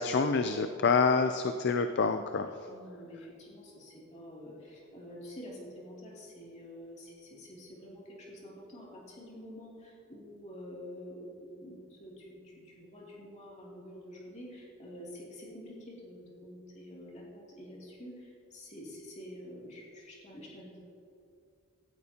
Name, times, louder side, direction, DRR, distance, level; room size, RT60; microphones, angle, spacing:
voice 1, 0.0-2.5, left 4 dB, 50° left, 8 dB, 0.4 m, -27 dB
voice 2, 2.7-20.8, equal, 30° left, -4 dB, 2.7 m, -48 dB
17.0 x 12.5 x 2.9 m, 2.4 s
head